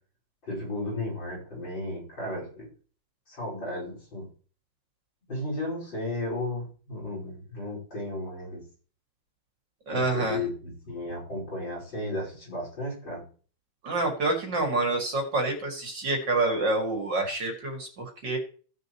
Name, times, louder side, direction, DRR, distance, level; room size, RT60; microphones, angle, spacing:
voice 1, 0.4-2.7 3.3-4.3 5.3-8.6 9.9-13.2, left 1 dB, 70° left, -5 dB, 5.8 m, -34 dB
voice 2, 9.9-10.4 13.8-18.4, right 2 dB, 65° right, 2 dB, 3.1 m, -27 dB
17.0 x 6.7 x 3.1 m, 0.41 s
omnidirectional pair, 2.1 m